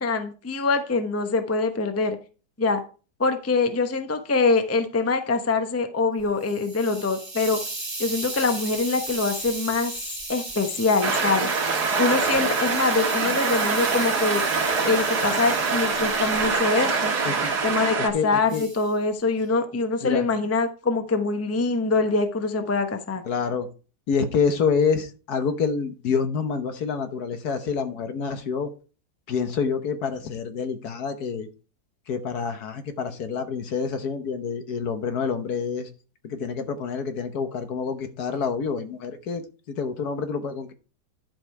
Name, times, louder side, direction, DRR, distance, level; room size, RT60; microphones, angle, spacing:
voice 1, 0.0-2.2 2.6-2.8 3.2-7.6 8.0-9.9 10.3-11.5 12.0-14.4 14.8-17.1 17.6-23.2, left 3 dB, 10° left, 7 dB, 0.7 m, -24 dB
Hiss, 6.2-18.0 18.5-18.9, right 2 dB, 15° right, 1.4 m, -36 dB
sound 1, 11.0-18.1, right 4 dB, 70° right, 2.1 m, -24 dB
voice 2, 17.2-17.6 18.0-18.6 20.0-20.3 23.2-23.7 24.1-28.7 29.3-31.5 32.1-35.9 36.2-40.7, left 5 dB, 65° left, 8 dB, 1.5 m, -27 dB
11.5 x 5.1 x 4.7 m, 0.35 s
omnidirectional pair, 1.8 m